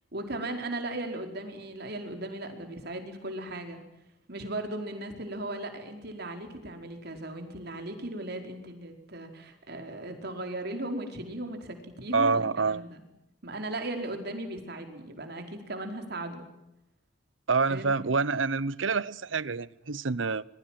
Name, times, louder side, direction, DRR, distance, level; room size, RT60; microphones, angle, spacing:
voice 1, 0.1-3.8 4.3-12.4 12.7-12.9 13.4-16.5 17.7-17.9, right 1 dB, 60° right, 4.8 m, -37 dB
voice 2, 12.1-12.8 17.5-20.4, right 4 dB, 85° right, 0.8 m, -27 dB
26.5 x 22.0 x 7.7 m
head